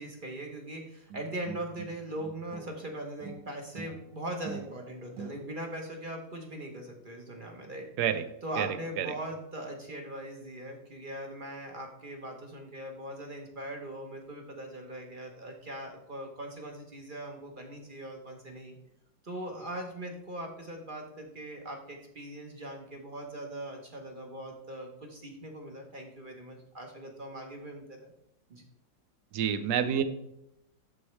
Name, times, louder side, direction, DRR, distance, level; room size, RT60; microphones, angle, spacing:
voice 1, 0.0-7.9 8.4-18.8 19.2-28.1 28.5-28.6, right 1 dB, 35° right, 2 dB, 0.9 m, -40 dB
sound 1, 1.1-2.9 3.2-5.8, right 6 dB, 85° right, 1.6 m, -45 dB
voice 2, 29.3-30.0, right 9 dB, 70° right, 10 dB, 1.1 m, -28 dB
12.5 x 4.3 x 3.2 m, 0.81 s
omnidirectional pair, 2.0 m